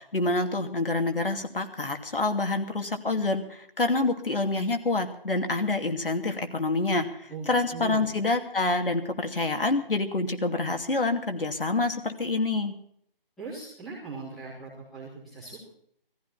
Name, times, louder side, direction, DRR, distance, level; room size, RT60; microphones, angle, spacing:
voice 1, 0.0-12.7, left 2 dB, 65° left, 6 dB, 2.8 m, -27 dB
voice 2, 7.3-8.0 13.4-15.7, right 4 dB, ahead, -9 dB, 1.1 m, -40 dB
19.0 x 15.0 x 4.2 m, 0.67 s
figure-of-eight pair, 175°, 29 cm